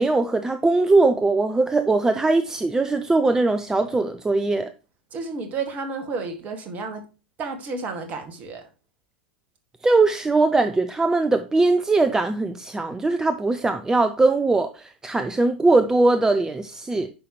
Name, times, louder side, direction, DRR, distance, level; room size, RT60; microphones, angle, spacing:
voice 1, 0.0-4.7 9.8-17.1, right 3 dB, 10° right, 0.5 m, -20 dB
voice 2, 5.1-7.0 7.4-8.6, right 4 dB, 30° right, 2.0 m, -31 dB
9.8 x 5.7 x 3.1 m
figure-of-eight pair, 90°, 5 cm